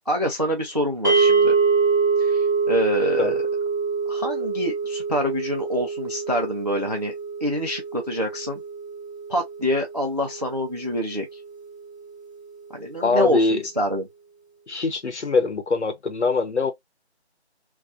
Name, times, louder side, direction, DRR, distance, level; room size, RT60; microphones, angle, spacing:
voice 1, 0.1-1.5 2.2-3.4 4.1-7.1 7.4-8.6 9.3-11.4 12.7-14.1, equal, 40° right, 0.4 m, -26 dB
sound 1, 1.0-11.3, right 4 dB, 20° right, 0.9 m, -25 dB
voice 2, 13.0-13.6 14.7-16.7, left 3 dB, 90° left, 0.9 m, -23 dB
2.5 x 2.3 x 2.4 m
figure-of-eight pair, 165°, 33 cm